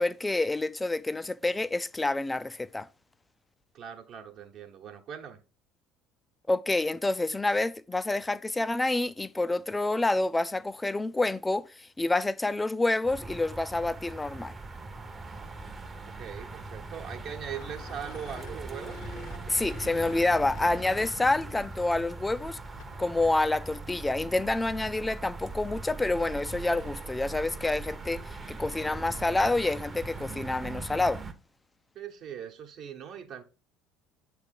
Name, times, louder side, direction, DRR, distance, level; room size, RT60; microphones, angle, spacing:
voice 1, 0.0-2.9 6.5-14.5 19.5-22.6 23.0-31.2, left 2 dB, 15° left, 0.4 m, -28 dB
voice 2, 3.7-5.4 16.1-19.1 31.9-33.4, right 8 dB, 50° right, 1.1 m, -41 dB
sound 1, 13.0-31.3, right 3 dB, 25° right, 0.9 m, -41 dB
sound 2, 17.4-23.1, left 8 dB, 60° left, 0.8 m, -50 dB
8.1 x 3.4 x 5.2 m
figure-of-eight pair, 60°, 0 cm